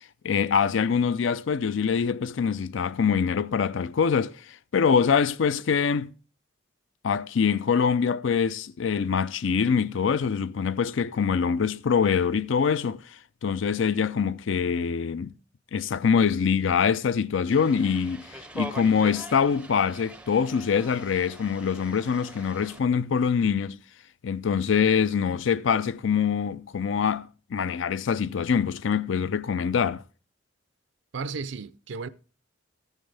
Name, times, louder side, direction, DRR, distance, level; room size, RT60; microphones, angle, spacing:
voice 1, 0.2-4.4 4.7-6.1 7.0-13.0 13.4-15.3 15.7-23.8 24.2-30.0, left 6 dB, 70° left, 0.4 m, -24 dB
sound 1, 17.5-22.8, right 1 dB, 5° right, 0.5 m, -43 dB
voice 2, 31.1-32.1, right 4 dB, 70° right, 0.5 m, -34 dB
14.0 x 9.1 x 3.3 m
head